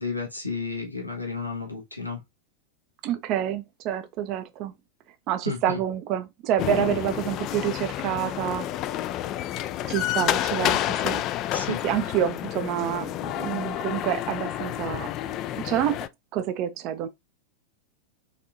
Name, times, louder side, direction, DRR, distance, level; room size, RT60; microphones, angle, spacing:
voice 1, 0.0-2.2 5.4-5.8 11.5-11.8, left 4 dB, 90° left, 1.3 m, -32 dB
voice 2, 3.0-4.7 5.3-8.7 9.9-11.2 11.8-15.1 15.6-16.0 16.3-17.1, right 10 dB, 40° right, 0.6 m, -28 dB
sound 1, 6.6-16.1, left 12 dB, 35° left, 0.4 m, -29 dB
4.2 x 3.7 x 2.6 m
figure-of-eight pair, 90°, 0 cm